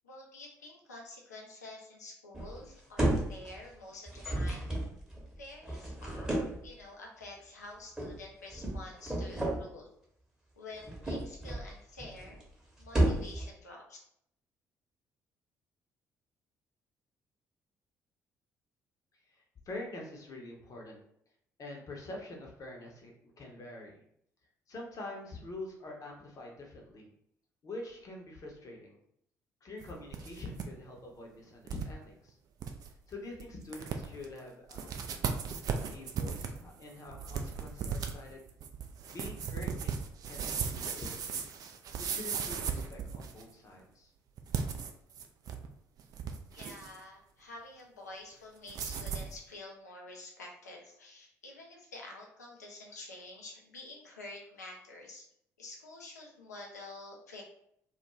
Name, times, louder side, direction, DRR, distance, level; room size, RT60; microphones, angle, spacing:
voice 1, 0.0-4.7 5.4-6.3 6.6-9.9 10.6-12.4 12.8-14.0 46.5-55.3 55.6-57.4, left 2 dB, 80° left, 0 dB, 0.5 m, -48 dB
sound 1, 2.3-2.7 3.0-3.7 4.1-6.7 8.0-8.2 8.5-9.6 10.7-11.7 12.0-12.5 12.8-13.5, right 1 dB, 5° right, 0.9 m, -32 dB
voice 2, 19.3-21.0 21.6-24.0 24.7-27.1 27.6-29.0 29.6-32.4 33.1-35.0 35.9-38.4 39.1-40.0 40.3-41.4 42.1-44.1, left 2 dB, 40° left, 0 dB, 0.7 m, -45 dB
sound 2, 29.8-30.7 31.0-31.1 31.7-31.9 32.3-32.4 32.6-32.9 33.4-33.5 33.7-34.2 34.7-43.5 44.4-45.7 46.0-47.0 48.7-49.3, right 6 dB, 45° right, 0.3 m, -37 dB
2.3 x 2.2 x 2.9 m, 0.71 s
figure-of-eight pair, 45°, 9 cm